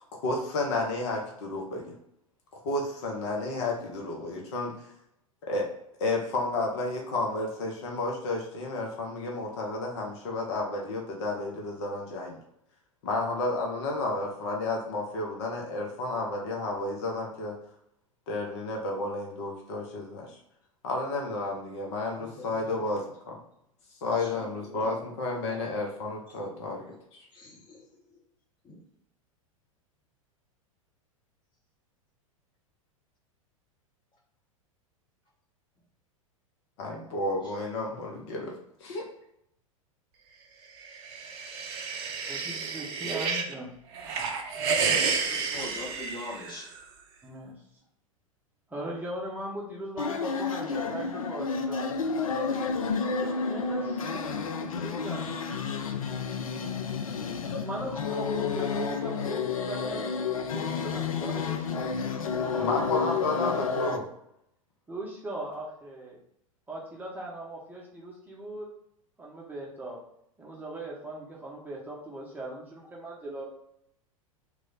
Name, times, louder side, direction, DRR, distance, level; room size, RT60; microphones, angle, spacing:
voice 1, 0.2-1.9 2.5-4.7 5.5-5.6 6.0-12.4 13.0-17.6 18.3-20.4 20.8-23.4 24.0-27.3 36.8-38.6 38.8-39.1 62.6-64.0, left 2 dB, 55° left, 0 dB, 0.8 m, -31 dB
voice 2, 22.1-22.8 24.1-25.1 26.3-26.4 27.3-28.2 28.6-28.8 37.0-37.3 45.3-46.7, left 2 dB, 25° left, -3 dB, 1.3 m, -44 dB
sound 1, 40.8-43.5 43.9-46.8, right 5 dB, 45° right, 0.5 m, -30 dB
voice 3, 42.3-43.7 47.2-47.5 48.7-52.5 53.2-55.5 57.4-61.9 62.5-62.7 62.9-63.1 63.3-63.6 64.9-66.2 66.7-68.7 69.2-70.0 70.4-73.4, right 1 dB, 10° right, -4 dB, 0.8 m, -39 dB
sound 2, 50.0-64.0, left 5 dB, 75° left, 0.4 m, -31 dB
3.1 x 2.4 x 3.9 m, 0.76 s
figure-of-eight pair, 90°, 18 cm